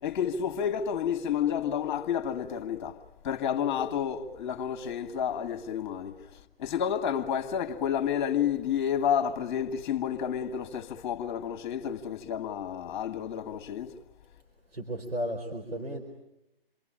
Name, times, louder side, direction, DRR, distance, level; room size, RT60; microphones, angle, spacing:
voice 1, 0.0-3.0 3.2-6.2 6.6-13.9, left 8 dB, 30° left, 1.9 m, -30 dB
voice 2, 14.7-16.0, equal, 80° right, 4.7 m, -34 dB
28.0 x 23.5 x 9.0 m
figure-of-eight pair, 145°, 30 cm